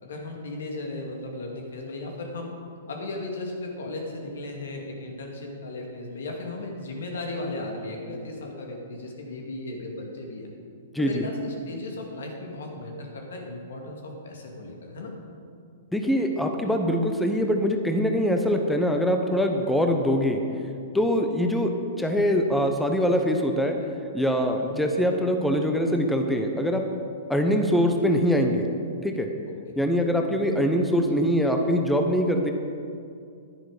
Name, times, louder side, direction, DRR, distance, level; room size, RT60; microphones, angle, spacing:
voice 1, 0.0-2.5 2.9-10.5 11.0-15.1 19.8-20.0 24.6-24.8, left 2 dB, 75° left, 1 dB, 2.3 m, -36 dB
voice 2, 15.9-20.4 20.9-23.8 24.1-26.9 27.3-28.7 29.0-29.3 29.8-32.5, equal, 5° left, 3 dB, 0.9 m, -23 dB
10.5 x 10.0 x 5.0 m, 2.4 s
hypercardioid pair, 125°, 0 cm